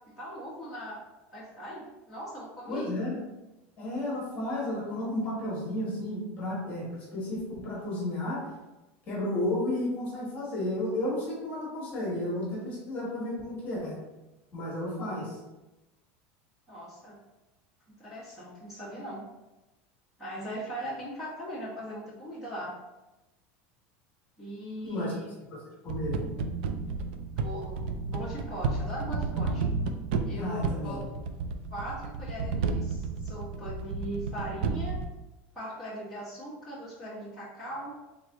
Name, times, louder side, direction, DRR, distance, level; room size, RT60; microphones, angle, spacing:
voice 1, 0.2-1.0 1.3-2.9 16.7-17.2 18.0-19.2 20.2-22.7 24.4-25.3 27.4-29.6 30.2-31.0 31.7-35.0 35.5-37.9, equal, 5° right, -11 dB, 1.2 m, -39 dB
voice 2, 2.7-3.2 3.8-8.4 9.1-14.0 14.5-15.4 24.8-25.2 25.5-26.2 30.3-31.0, left 1 dB, 30° left, -5 dB, 1.3 m, -32 dB
sound 1, 25.9-35.1, right 4 dB, 75° right, 0.4 m, -32 dB
3.7 x 3.2 x 3.5 m, 1.0 s
cardioid pair, 180°, 6 cm